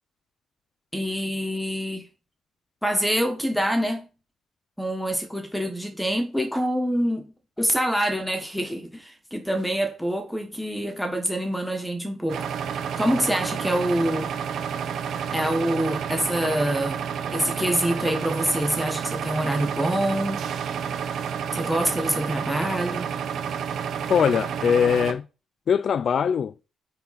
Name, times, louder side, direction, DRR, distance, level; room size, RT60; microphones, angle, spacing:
voice 1, 0.9-2.0 2.8-4.1 4.8-12.5 12.9-14.4 15.3-17.0 17.3-20.4 21.5-23.1, equal, 5° left, 1.3 m, -26 dB
sound 1, 12.3-25.1, right 7 dB, 70° right, 0.9 m, -30 dB
voice 2, 24.1-25.2 25.7-26.5, left 7 dB, 55° left, 0.3 m, -21 dB
9.3 x 3.6 x 4.2 m
cardioid pair, 90°, 0 cm